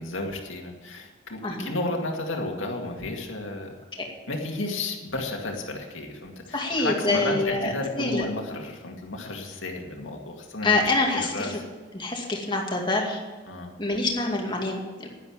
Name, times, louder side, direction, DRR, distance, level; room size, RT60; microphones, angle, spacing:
voice 1, 0.0-3.7 4.3-10.7 11.1-11.6 13.5-13.7, left 2 dB, 75° left, 1 dB, 2.2 m, -32 dB
voice 2, 6.5-8.3 10.6-11.5 11.9-13.2 13.8-15.1, left 2 dB, 25° left, 0 dB, 2.3 m, -26 dB
11.0 x 11.0 x 7.3 m, 1.4 s
head